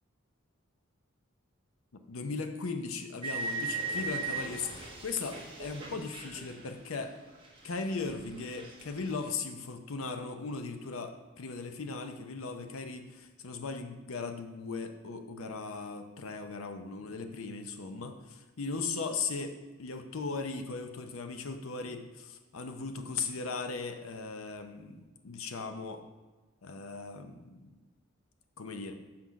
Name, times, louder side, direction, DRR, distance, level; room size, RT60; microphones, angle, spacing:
voice 1, 2.1-7.2 7.6-19.5 19.8-26.0 26.6-27.7 28.6-28.9, left 4 dB, 80° left, 7 dB, 0.7 m, -38 dB
sound 1, 3.2-7.2 7.4-9.3, right 3 dB, 25° right, 1.3 m, -39 dB
5.9 x 4.4 x 6.2 m, 1.2 s
head